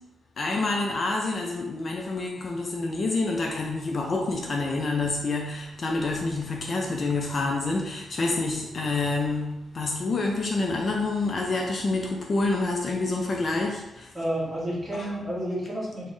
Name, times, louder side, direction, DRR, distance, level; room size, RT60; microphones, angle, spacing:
voice 1, 0.4-14.1 15.0-15.1, left 3 dB, 40° left, 0 dB, 0.4 m, -27 dB
voice 2, 14.1-16.1, right 1 dB, 15° right, -7 dB, 1.2 m, -30 dB
4.1 x 2.1 x 3.1 m, 0.97 s
cardioid pair, 130°, 0 cm